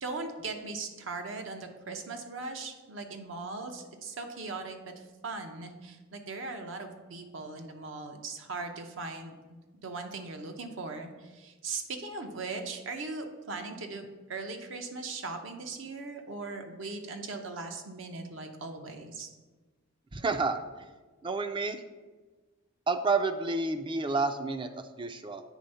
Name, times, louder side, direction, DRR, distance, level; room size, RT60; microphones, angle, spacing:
voice 1, 0.0-4.9 5.2-14.0 14.3-19.3, right 3 dB, 65° right, 5 dB, 0.8 m, -39 dB
voice 2, 20.1-20.9 21.2-21.8 22.9-25.4, right 3 dB, 25° right, 9 dB, 0.4 m, -30 dB
8.2 x 3.5 x 5.5 m, 1.3 s
head